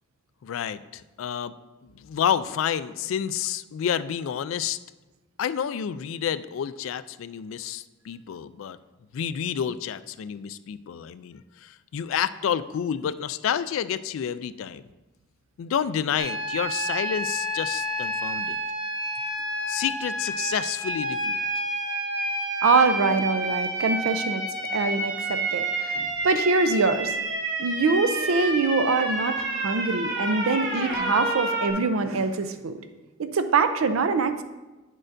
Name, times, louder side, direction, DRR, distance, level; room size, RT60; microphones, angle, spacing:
voice 1, 0.4-1.5 1.8-4.8 5.4-8.8 9.1-14.8 15.6-18.6 19.7-21.4, left 8 dB, 70° left, 14 dB, 0.3 m, -29 dB
sound 1, 16.2-31.7, right 1 dB, 60° right, 1.2 m, -29 dB
voice 2, 22.6-24.4 24.7-27.1 27.6-32.8 33.2-34.4, right 4 dB, 85° right, 10 dB, 0.5 m, -24 dB
9.7 x 6.4 x 2.6 m, 1.1 s
head